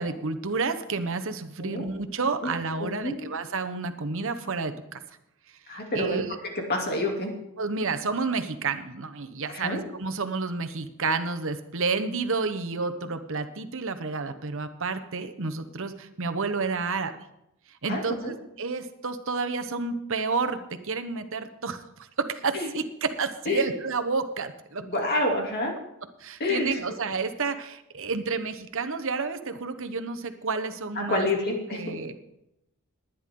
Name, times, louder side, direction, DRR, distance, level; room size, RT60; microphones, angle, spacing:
voice 1, 0.0-5.0 5.9-6.4 7.6-17.2 17.8-24.8 26.2-31.3 31.7-32.2, right 4 dB, 65° right, 10 dB, 1.1 m, -30 dB
voice 2, 5.7-6.2 6.7-7.3 9.5-9.8 17.9-18.3 22.5-22.7 23.5-23.7 24.8-25.7 26.4-26.8 31.0-32.0, left 1 dB, 45° left, 1 dB, 2.9 m, -28 dB
19.0 x 10.5 x 3.8 m, 0.84 s
head